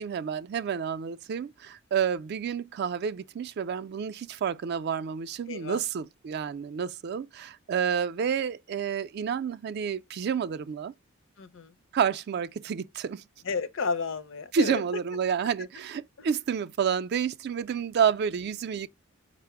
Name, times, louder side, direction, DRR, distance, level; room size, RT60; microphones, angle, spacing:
voice 1, 0.0-10.9 11.9-13.2 14.5-18.9, right 7 dB, 55° right, 0.3 m, -29 dB
voice 2, 5.5-5.8 11.4-11.7 13.4-14.8 16.2-16.3, left 5 dB, 65° left, 0.5 m, -32 dB
4.9 x 2.0 x 4.6 m
head